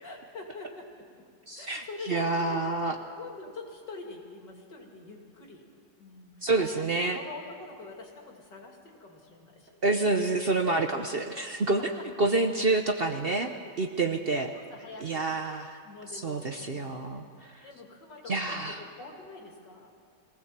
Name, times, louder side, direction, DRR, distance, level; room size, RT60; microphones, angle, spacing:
voice 1, 0.0-1.2 1.6-5.7 6.0-6.9 7.1-9.8 10.1-10.2 13.6-13.7 14.5-15.3 15.8-17.0 17.6-19.9, left 3 dB, 80° left, 0 dB, 3.3 m, -45 dB
voice 2, 1.5-3.0 6.4-7.2 9.8-11.9 12.2-13.5 13.8-14.5 15.0-15.8 16.1-17.7 18.3-18.8, right 3 dB, 45° right, 5 dB, 0.9 m, -28 dB
22.0 x 16.5 x 7.4 m, 2.1 s
omnidirectional pair, 1.9 m